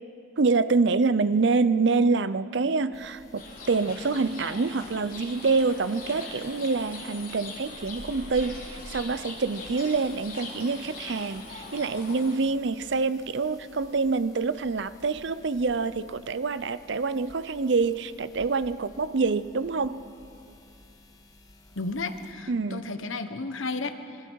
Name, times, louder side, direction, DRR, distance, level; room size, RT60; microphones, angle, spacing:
voice 1, 0.4-20.0 22.5-22.8, right 4 dB, 60° right, 0.5 m, -26 dB
sound 1, 2.9-22.3, left 1 dB, 15° left, 1.5 m, -52 dB
sound 2, 3.4-12.4, left 3 dB, 40° left, 3.6 m, -42 dB
voice 2, 21.8-23.9, left 3 dB, 75° left, 1.2 m, -33 dB
26.5 x 21.5 x 4.7 m
head